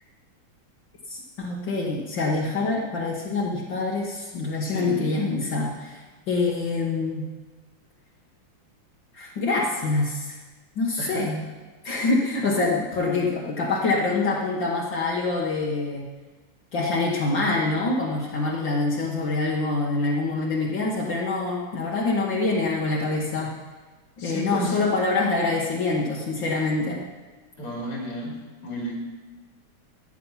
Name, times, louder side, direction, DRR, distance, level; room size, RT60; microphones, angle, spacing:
voice 1, 1.1-6.0 6.3-7.2 9.2-10.4 10.8-11.4 11.8-16.0 16.7-23.5 24.2-27.0, left 3 dB, 60° left, -3 dB, 2.0 m, -25 dB
voice 2, 4.6-5.1 11.0-11.3 24.2-24.9 27.6-28.3 28.6-28.9, left 1 dB, 90° left, -2 dB, 4.0 m, -32 dB
14.0 x 9.3 x 5.7 m, 1.3 s
omnidirectional pair, 2.4 m